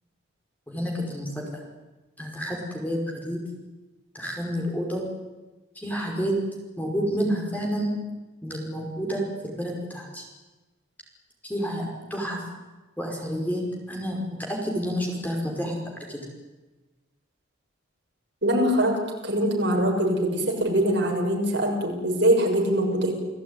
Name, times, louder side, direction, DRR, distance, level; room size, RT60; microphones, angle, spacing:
voice 1, 0.7-1.6 2.2-3.4 4.1-5.0 5.8-6.4 6.8-7.9 8.4-10.3 11.4-12.4 13.0-14.2 14.5-15.8 16.1-16.2, equal, 10° left, 0 dB, 5.3 m, -29 dB
voice 2, 18.4-19.0 19.2-23.1, right 1 dB, 55° right, 0 dB, 6.8 m, -23 dB
29.5 x 17.5 x 9.9 m, 1.2 s
head